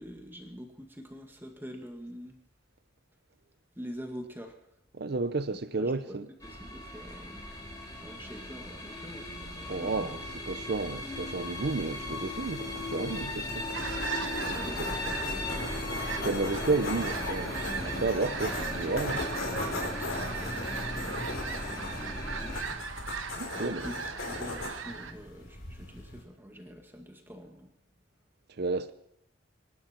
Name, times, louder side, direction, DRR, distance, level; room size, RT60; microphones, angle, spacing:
voice 1, 0.0-2.4 3.8-4.5 5.5-6.2 6.4-7.4 8.0-10.2 14.4-15.7 19.7-23.0 23.6-27.7, equal, 10° right, 2.0 m, -45 dB
voice 2, 4.9-6.3 9.7-10.2 10.5-13.7 14.8-14.9 16.2-19.2 23.4-23.8 28.6-28.9, right 3 dB, 55° right, 0.7 m, -32 dB
sound 1, 6.4-22.6, left 1 dB, 20° left, 3.2 m, -37 dB
sound 2, 13.5-26.2, left 2 dB, 90° left, 3.7 m, -39 dB
sound 3, 13.7-25.1, right 5 dB, 80° right, 1.2 m, -39 dB
25.5 x 12.0 x 4.5 m
head